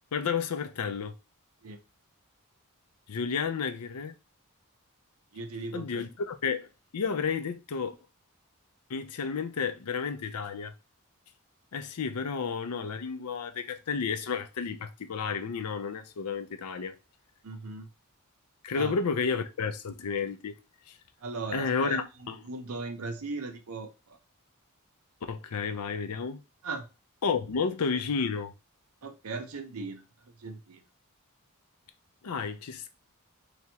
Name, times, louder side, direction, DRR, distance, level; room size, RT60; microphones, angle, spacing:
voice 1, 0.1-1.1 3.1-4.1 5.7-6.7 6.9-8.0 8.9-10.7 11.7-17.0 18.6-20.6 20.9-21.0 21.5-22.4 25.3-26.4 27.2-28.5 32.2-32.9, left 5 dB, 80° left, 0.5 m, -31 dB
voice 2, 5.3-6.0 17.4-17.9 18.8-18.9 21.2-22.0 22.5-23.9 26.6-26.9 29.0-30.0 30.4-30.8, right 3 dB, 70° right, 0.7 m, -37 dB
3.4 x 2.9 x 2.8 m
head